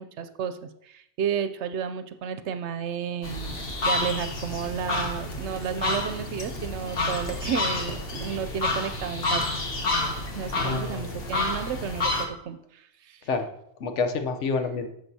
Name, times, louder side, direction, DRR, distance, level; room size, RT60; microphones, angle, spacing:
voice 1, 0.0-9.6 10.3-13.2, right 7 dB, 75° right, 10 dB, 0.8 m, -32 dB
sound 1, 3.2-12.2, left 2 dB, 55° left, 1.3 m, -29 dB
voice 2, 10.6-11.3 13.3-13.5 13.8-14.9, left 4 dB, 80° left, 6 dB, 1.1 m, -28 dB
10.5 x 6.9 x 2.7 m, 0.75 s
omnidirectional pair, 1.2 m